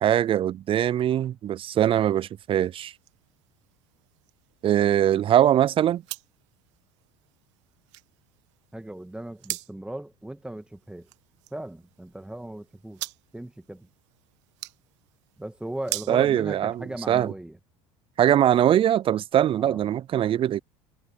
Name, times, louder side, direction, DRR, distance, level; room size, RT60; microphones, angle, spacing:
voice 1, 0.0-2.9 4.6-6.0 16.1-17.3 18.2-20.6, right 11 dB, 35° right, 0.4 m, -22 dB
sound 1, 2.2-17.3, right 20 dB, 80° right, 1.5 m, -44 dB
voice 2, 8.7-11.1 11.5-13.0 13.3-13.9 15.4-17.6 19.6-19.8, right 1 dB, 5° right, 1.9 m, -37 dB
hypercardioid pair, 85°, 15 cm